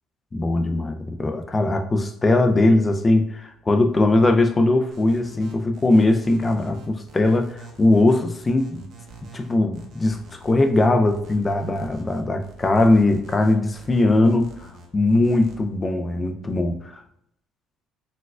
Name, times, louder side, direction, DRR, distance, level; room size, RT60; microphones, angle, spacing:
voice 1, 0.3-8.9 9.3-10.2 10.4-17.0, left 2 dB, 15° left, 6 dB, 0.3 m, -20 dB
sound 1, 4.9-15.5, right 2 dB, 60° right, 0.6 m, -46 dB
4.2 x 2.2 x 2.4 m, 0.76 s
cardioid pair, 150°, 0 cm